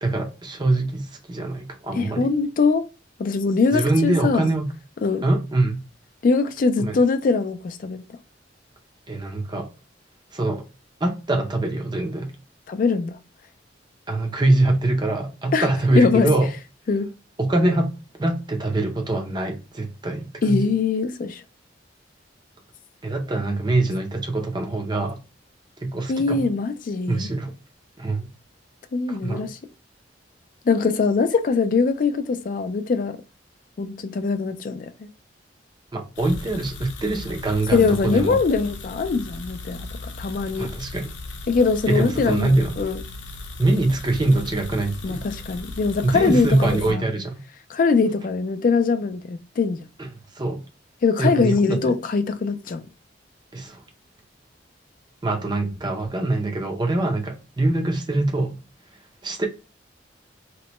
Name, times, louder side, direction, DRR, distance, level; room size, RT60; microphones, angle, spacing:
voice 1, 0.0-2.3 3.7-4.7 5.2-5.8 6.8-7.0 9.1-9.7 10.3-10.6 11.0-12.3 14.1-16.5 17.4-17.9 18.2-20.6 23.0-25.2 25.8-26.5 27.1-27.5 28.0-28.3 29.1-29.5 35.9-38.4 40.6-41.1 41.9-42.7 43.6-45.2 46.0-47.4 50.0-50.1 50.4-50.6 51.2-51.9 53.5-53.8 55.2-58.6 59.2-59.5, right 2 dB, 25° right, 0.5 m, -23 dB
voice 2, 1.9-2.9 3.2-4.5 5.0-5.2 6.2-8.0 12.7-13.2 15.5-15.7 15.9-16.3 16.9-17.1 20.4-21.4 26.1-27.3 28.9-29.6 30.6-33.2 33.8-35.1 37.7-39.9 40.2-40.7 41.5-43.0 45.0-47.1 47.7-49.8 51.0-52.8, left 4 dB, 45° left, 0.3 m, -22 dB
sound 1, 36.1-46.9, left 2 dB, 90° left, 0.6 m, -37 dB
2.9 x 2.1 x 3.0 m
head